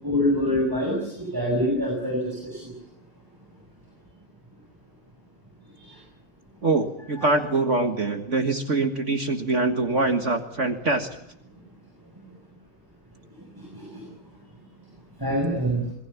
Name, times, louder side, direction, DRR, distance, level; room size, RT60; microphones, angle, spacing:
voice 1, 0.0-2.7 5.8-6.0 7.2-7.3 13.5-14.0 15.2-15.8, equal, 10° right, -1 dB, 7.3 m, -26 dB
voice 2, 6.6-11.1, right 3 dB, 45° right, 7 dB, 1.9 m, -24 dB
27.0 x 22.5 x 7.1 m, 0.78 s
omnidirectional pair, 1.9 m